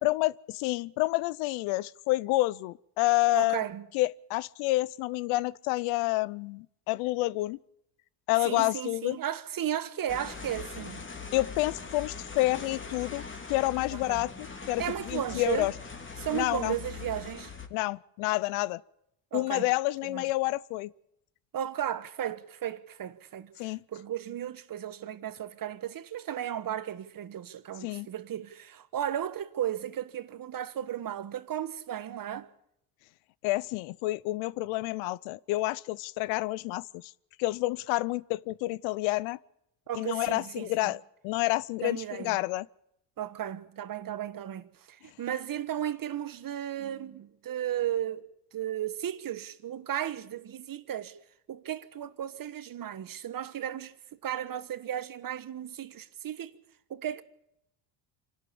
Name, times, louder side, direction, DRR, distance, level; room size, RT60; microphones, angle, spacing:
voice 1, 0.0-3.6 3.9-7.6 8.3-9.2 11.3-13.2 13.5-15.7 16.3-16.8 17.7-18.8 19.3-20.9 23.6-23.8 27.8-28.1 33.4-37.1 37.4-39.4 39.9-42.7, left 20 dB, 75° left, 0.7 m, -29 dB
voice 2, 3.3-3.8 8.4-11.0 13.9-14.2 14.8-15.7 16.2-17.5 19.3-19.7 20.1-20.2 21.5-32.5 39.9-40.9 41.8-42.4 43.2-48.3 48.5-51.2 51.5-53.9 54.2-56.6 56.9-57.2, right 10 dB, 40° right, 1.4 m, -35 dB
sound 1, 10.1-17.7, left 5 dB, 25° left, 2.7 m, -41 dB
25.5 x 12.5 x 8.6 m
supercardioid pair, 80°, 49 cm